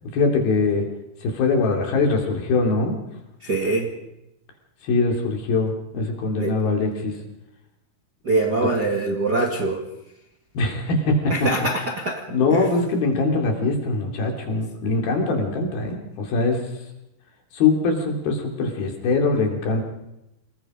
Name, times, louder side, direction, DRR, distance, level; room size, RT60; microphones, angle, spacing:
voice 1, 0.0-0.8 1.2-3.0 4.8-7.1 10.5-11.4 12.3-16.6 17.5-19.8, left 3 dB, 70° left, 2 dB, 5.0 m, -22 dB
voice 2, 3.4-4.0 6.4-6.6 8.2-9.8 11.3-12.7, right 2 dB, 35° right, 1 dB, 1.7 m, -24 dB
28.0 x 20.0 x 5.2 m, 0.88 s
omnidirectional pair, 4.6 m